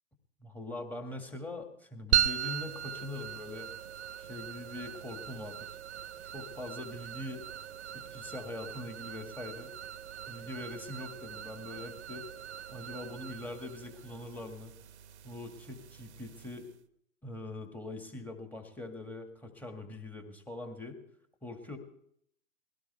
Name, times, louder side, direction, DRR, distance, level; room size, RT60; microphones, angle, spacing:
voice 1, 0.4-3.7 4.2-5.7 6.3-7.4 7.9-9.7 10.3-12.2 12.7-14.7 15.2-16.7 17.2-21.0 21.4-21.8, left 2 dB, 5° left, 4 dB, 2.0 m, -42 dB
sound 1, 2.1-16.8, right 10 dB, 50° right, 1.2 m, -38 dB
22.5 x 17.0 x 3.4 m, 0.69 s
hypercardioid pair, 135°, 44 cm